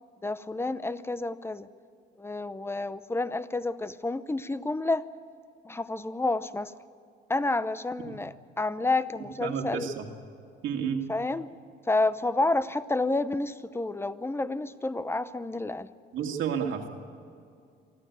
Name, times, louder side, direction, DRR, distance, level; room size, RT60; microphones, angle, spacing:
voice 1, 0.2-1.7 2.2-5.1 5.6-6.8 7.3-9.9 11.1-11.5 11.9-15.9, left 2 dB, 10° left, 14 dB, 0.8 m, -29 dB
voice 2, 9.4-10.0 10.6-11.1 16.1-16.9, right 7 dB, 80° right, 2 dB, 2.3 m, -31 dB
24.0 x 14.0 x 9.5 m, 2.4 s
cardioid pair, 90°, 20 cm